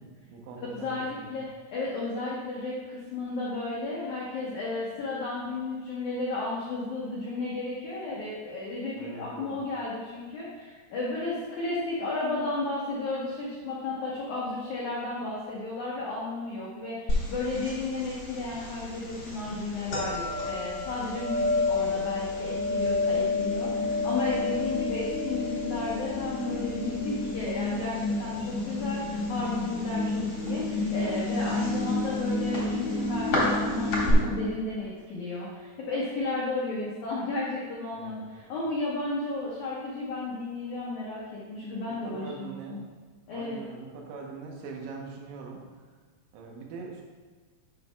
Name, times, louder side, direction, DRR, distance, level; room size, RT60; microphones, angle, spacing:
voice 1, 0.0-1.4 9.0-9.6 24.4-24.7 37.9-38.5 41.9-42.9 43.3-45.6 46.3-47.0, right 4 dB, 90° right, 0 dB, 3.3 m, -43 dB
voice 2, 0.6-1.4 1.7-42.8 43.3-43.6, left 2 dB, 90° left, -6 dB, 1.6 m, -33 dB
sound 1, 17.1-34.1, left 3 dB, 55° left, 1.4 m, -32 dB
sound 2, 21.3-34.5, left 2 dB, 70° left, 1.2 m, -32 dB
sound 3, 29.3-35.2 35.4-35.5, right 2 dB, 65° right, 2.2 m, -52 dB
10.0 x 5.5 x 2.3 m, 1.5 s
omnidirectional pair, 5.1 m